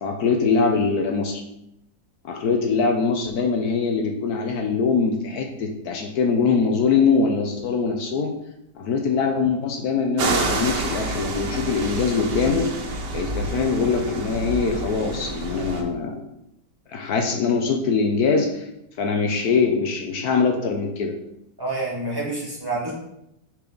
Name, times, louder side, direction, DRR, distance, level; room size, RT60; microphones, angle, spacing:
voice 1, 0.0-1.4 2.2-8.3 8.7-12.7 13.1-16.2 16.9-18.6 19.0-21.1, left 5 dB, 70° left, 3 dB, 1.2 m, -22 dB
sound 1, 10.2-15.8, right 2 dB, 90° right, 1.6 m, -28 dB
voice 2, 21.6-22.9, right 2 dB, 15° right, -5 dB, 1.5 m, -28 dB
6.8 x 4.8 x 3.9 m, 0.82 s
omnidirectional pair, 1.8 m